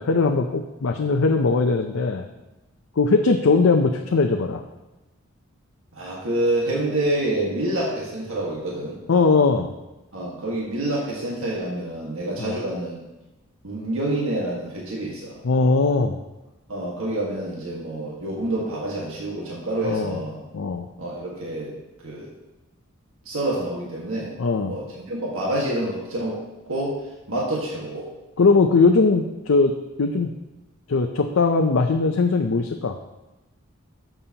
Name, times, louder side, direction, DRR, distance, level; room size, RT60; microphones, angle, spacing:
voice 1, 0.0-2.2 3.0-4.6 9.1-9.7 12.4-12.6 15.4-16.2 19.8-20.2 20.5-20.9 24.4-24.8 28.4-29.7 30.0-30.3 30.9-32.9, left 4 dB, 75° left, 4 dB, 0.5 m, -20 dB
voice 2, 5.9-9.0 10.1-13.1 13.6-15.4 16.7-20.4 21.0-21.7 22.0-22.3 23.2-24.3 24.6-26.4 26.6-27.0 27.3-28.1, right 1 dB, 70° right, -3 dB, 1.6 m, -27 dB
12.5 x 6.8 x 2.9 m, 1.0 s
head